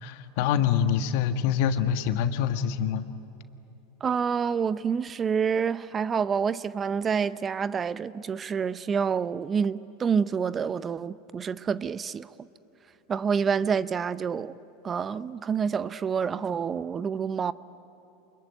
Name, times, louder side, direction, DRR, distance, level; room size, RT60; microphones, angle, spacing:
voice 1, 0.0-3.0, left 8 dB, 65° left, 1.5 m, -25 dB
voice 2, 4.0-12.3 13.1-14.6 14.8-17.5, right 6 dB, 25° right, 0.6 m, -28 dB
27.5 x 22.0 x 9.1 m
hypercardioid pair, 100°, 0 cm